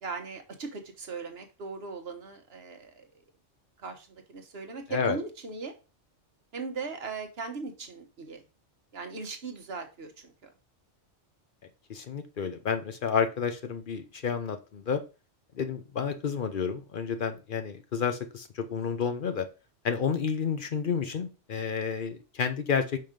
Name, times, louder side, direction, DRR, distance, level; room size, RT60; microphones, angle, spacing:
voice 1, 0.0-3.1 3.8-5.7 6.5-8.4 8.9-10.3, right 4 dB, 55° right, 5 dB, 1.3 m, -38 dB
voice 2, 11.9-15.0 15.5-19.5 19.8-23.0, left 6 dB, 50° left, 8 dB, 0.7 m, -30 dB
5.4 x 3.8 x 5.0 m, 0.31 s
omnidirectional pair, 1.3 m